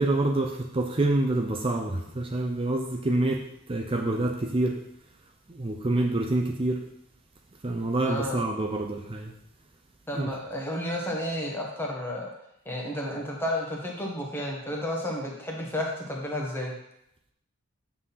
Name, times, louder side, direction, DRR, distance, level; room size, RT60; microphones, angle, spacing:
voice 1, 0.0-4.8 5.5-6.8 7.6-9.3 10.1-10.3, right 2 dB, 25° right, 2 dB, 0.6 m, -27 dB
voice 2, 8.0-8.4 10.1-12.3 12.6-16.7, left 1 dB, 10° left, -2 dB, 1.5 m, -32 dB
7.7 x 4.3 x 5.6 m, 0.78 s
head